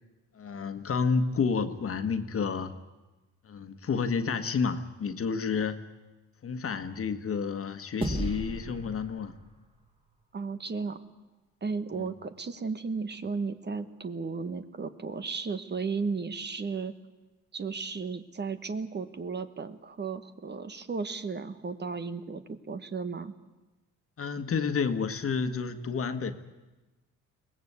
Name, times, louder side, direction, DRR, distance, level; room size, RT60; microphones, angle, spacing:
voice 1, 0.3-2.7 3.4-5.8 6.4-9.3 12.0-12.1 24.2-26.3, left 5 dB, 45° left, 9 dB, 1.6 m, -30 dB
sound 1, 8.0-10.6, right 1 dB, 20° right, 3.0 m, -36 dB
voice 2, 10.3-11.0 11.6-16.9 17.5-23.3, right 4 dB, 35° right, 11 dB, 1.3 m, -34 dB
23.0 x 18.5 x 8.3 m, 1.1 s
cardioid pair, 90°, 30 cm